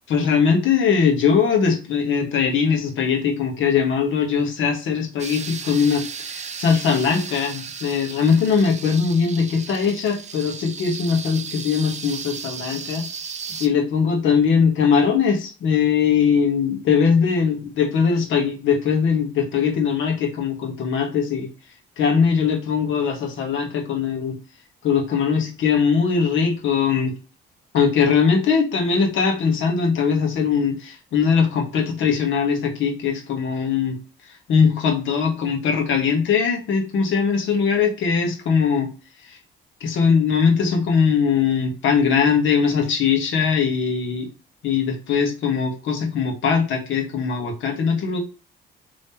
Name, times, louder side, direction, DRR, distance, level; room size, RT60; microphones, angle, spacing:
voice 1, 0.1-13.0 13.6-21.5 22.0-24.3 24.8-27.1 27.7-34.0 34.5-38.9 39.3-39.4 39.8-44.3 44.6-48.2, left 6 dB, 75° left, 3 dB, 1.3 m, -20 dB
sound 1, 5.2-13.7, right 6 dB, 35° right, 0.6 m, -35 dB
3.6 x 3.0 x 4.2 m, 0.34 s
cardioid pair, 90°, 20 cm